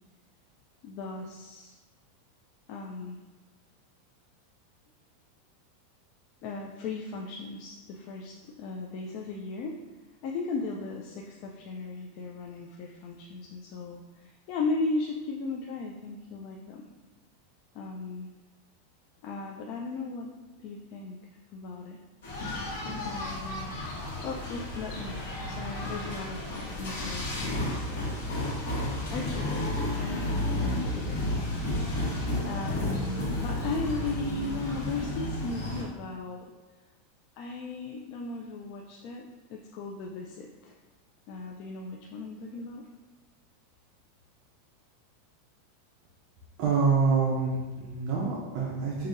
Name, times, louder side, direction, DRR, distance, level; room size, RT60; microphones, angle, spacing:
voice 1, 0.8-1.8 2.7-3.2 6.4-9.8 10.2-16.9 17.7-18.3 19.2-21.2 21.5-22.0 23.0-23.8 24.2-28.2 29.1-31.2 32.4-36.5 37.4-39.3 39.5-40.8 41.3-42.8, left 3 dB, 40° left, 0 dB, 0.3 m, -36 dB
sound 1, 22.2-35.8, left 1 dB, 65° left, 1.3 m, -32 dB
voice 2, 46.6-49.1, right 5 dB, 40° right, -3 dB, 0.6 m, -26 dB
5.3 x 2.6 x 2.5 m, 1.3 s
supercardioid pair, 170°, 0 cm